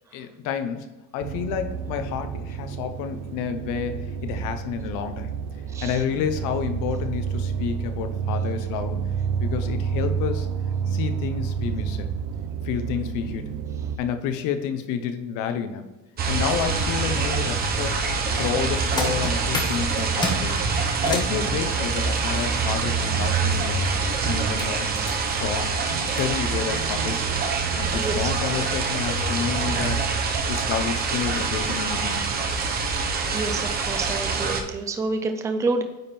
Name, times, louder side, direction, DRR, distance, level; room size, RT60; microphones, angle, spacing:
voice 1, 0.1-5.3 5.8-9.0 9.4-10.5 10.9-12.1 12.6-13.6 14.0-15.8 16.3-17.9 18.4-20.6 21.0-23.9 24.2-24.9 25.3-25.7 26.0-27.4 27.7-32.5, left 7 dB, 65° left, 8 dB, 1.0 m, -30 dB
sound 1, 1.2-14.0, right 6 dB, 90° right, 0.7 m, -29 dB
sound 2, 16.2-34.6, right 4 dB, 30° right, 0.8 m, -25 dB
sound 3, 17.5-21.4 23.8-26.3 27.0-27.1 27.6-27.7 28.2-28.4 28.8-28.9, left 2 dB, 15° left, 1.0 m, -33 dB
voice 2, 27.9-28.3 33.3-35.8, right 3 dB, 10° right, 7 dB, 0.4 m, -28 dB
9.4 x 3.7 x 4.3 m, 1.2 s
cardioid pair, 175°, 33 cm